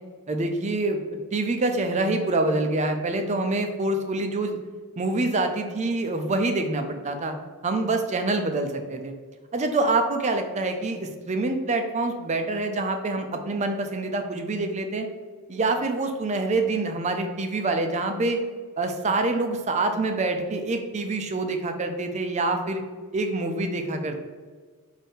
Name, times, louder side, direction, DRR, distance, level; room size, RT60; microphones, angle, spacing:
voice 1, 0.3-1.0 1.3-4.6 5.0-7.3 7.6-9.1 9.5-15.1 15.5-18.4 18.8-22.8 23.1-24.2, right 2 dB, 35° right, 6 dB, 0.4 m, -26 dB
5.4 x 2.7 x 3.5 m, 1.5 s
head